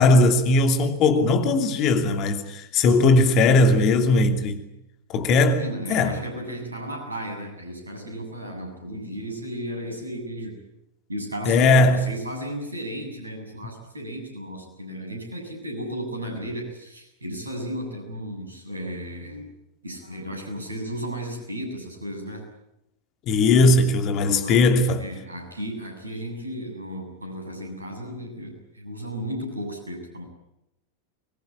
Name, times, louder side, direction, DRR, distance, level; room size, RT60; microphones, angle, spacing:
voice 1, 0.0-4.6 5.1-5.6 5.9-6.2 11.5-12.0 23.3-25.0, left 3 dB, 35° left, 2.8 m, -18 dB
voice 2, 5.6-10.6 11.1-19.5 19.8-22.4 24.3-24.6 25.0-30.2, equal, 80° right, 7.6 m, -34 dB
23.5 x 21.5 x 8.8 m
figure-of-eight pair, 90°, 0 cm